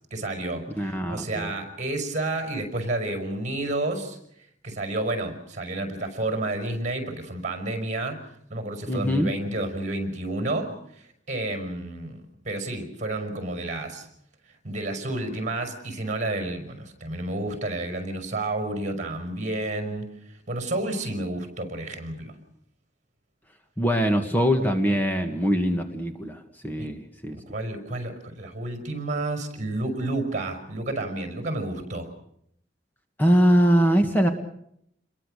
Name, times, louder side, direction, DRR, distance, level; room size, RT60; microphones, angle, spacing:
voice 1, 0.1-4.2 4.6-14.1 14.6-22.3 26.8-26.9 27.3-32.1, right 2 dB, 40° right, 7 dB, 5.5 m, -30 dB
voice 2, 0.8-1.5 8.9-9.3 23.8-27.4 33.2-34.3, equal, 10° left, 5 dB, 1.7 m, -22 dB
28.5 x 22.0 x 6.6 m, 0.72 s
head